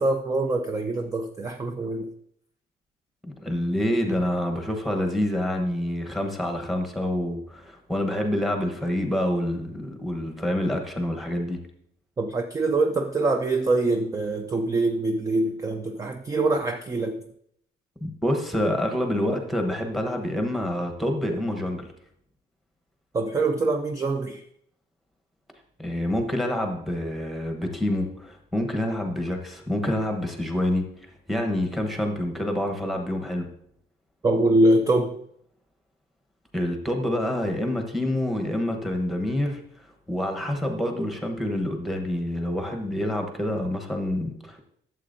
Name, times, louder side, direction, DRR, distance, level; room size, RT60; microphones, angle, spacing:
voice 1, 0.0-2.1 12.2-17.2 23.1-24.4 34.2-35.1, right 2 dB, 15° right, 6 dB, 0.4 m, -24 dB
voice 2, 3.2-11.6 18.0-21.9 25.8-30.9 31.3-33.5 36.5-39.6 40.1-44.6, left 1 dB, ahead, 3 dB, 1.0 m, -27 dB
12.0 x 7.5 x 2.6 m, 0.71 s
cardioid pair, 160°, 19 cm